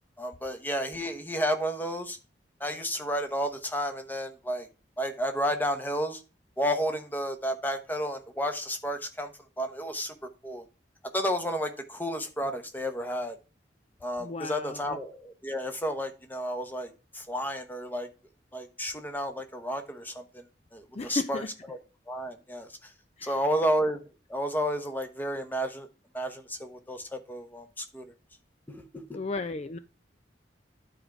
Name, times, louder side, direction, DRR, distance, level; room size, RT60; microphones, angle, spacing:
voice 1, 0.2-2.2 2.6-4.7 5.0-6.2 6.6-9.3 9.6-10.6 11.1-13.4 14.0-18.1 18.5-20.4 20.7-21.4 21.7-21.8 22.1-22.9 23.2-24.0 24.3-25.9 26.1-28.0 28.7-29.0, equal, 10° left, 1.1 m, -31 dB
voice 2, 14.2-15.0 20.9-21.5 23.2-23.4 29.1-29.8, left 3 dB, 35° left, 0.4 m, -34 dB
10.0 x 4.7 x 5.0 m
head